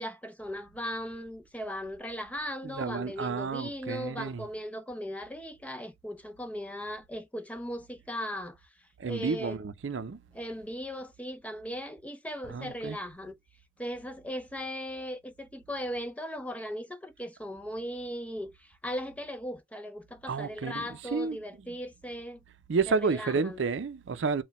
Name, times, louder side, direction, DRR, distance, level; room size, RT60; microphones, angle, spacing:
voice 1, 0.0-8.6 9.0-9.6 10.3-13.4 13.8-22.4 22.9-23.6, equal, 10° left, 0.6 m, -38 dB
voice 2, 2.6-4.4 9.0-10.2 12.5-13.0 20.3-21.4 22.7-24.4, right 4 dB, 80° right, 0.5 m, -31 dB
4.2 x 2.2 x 4.0 m
head